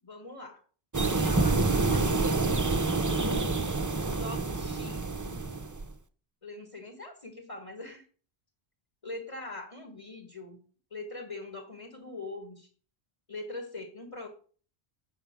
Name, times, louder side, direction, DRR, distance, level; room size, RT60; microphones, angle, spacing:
voice 1, 0.0-0.6 0.9-2.6 3.2-3.7 4.1-5.1 6.4-8.0 9.0-10.6 10.9-12.7 13.3-14.3, left 2 dB, 30° left, 3 dB, 1.6 m, -42 dB
sound 1, 0.9-5.8, right 3 dB, 20° right, 0.5 m, -27 dB
8.0 x 5.4 x 7.2 m, 0.42 s
omnidirectional pair, 1.0 m